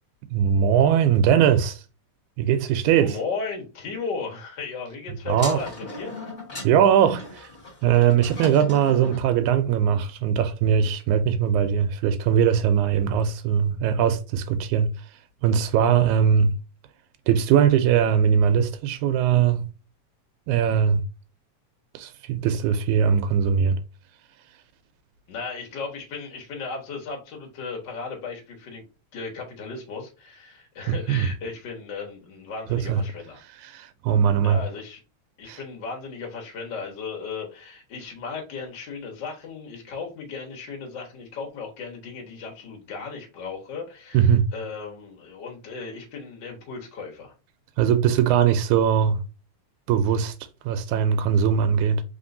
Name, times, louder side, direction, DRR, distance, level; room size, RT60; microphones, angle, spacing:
voice 1, 0.3-1.8 2.4-3.2 5.3-5.6 6.6-7.5 7.8-14.9 15.4-16.5 17.3-19.7 20.5-21.0 21.9-23.8 30.9-31.3 32.7-33.0 33.6-34.6 35.5-35.6 44.1-44.5 47.8-49.2 49.9-50.3 50.7-52.0, right 8 dB, 90° right, 2.0 m, -20 dB
voice 2, 2.9-6.1 25.3-28.9 29.1-33.4 34.4-35.0 35.4-47.3, left 4 dB, 45° left, 1.8 m, -35 dB
sound 1, 5.3-9.3, left 2 dB, 20° left, 1.9 m, -37 dB
4.4 x 3.7 x 2.6 m
omnidirectional pair, 3.4 m